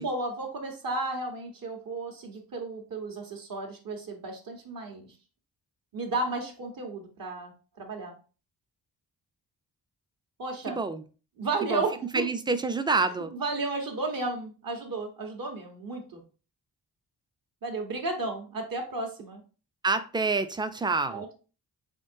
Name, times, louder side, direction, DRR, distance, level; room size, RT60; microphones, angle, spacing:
voice 1, 0.0-5.1 5.9-7.5 7.8-8.1 10.4-10.8 11.4-12.3 13.3-16.2 17.6-19.4 21.1-21.3, right 2 dB, 60° right, 1.2 m, -33 dB
voice 2, 10.7-11.0 11.6-11.8 12.1-13.3 19.8-21.3, right 3 dB, 10° right, 0.3 m, -27 dB
3.7 x 3.6 x 2.6 m
cardioid pair, 85°, 39 cm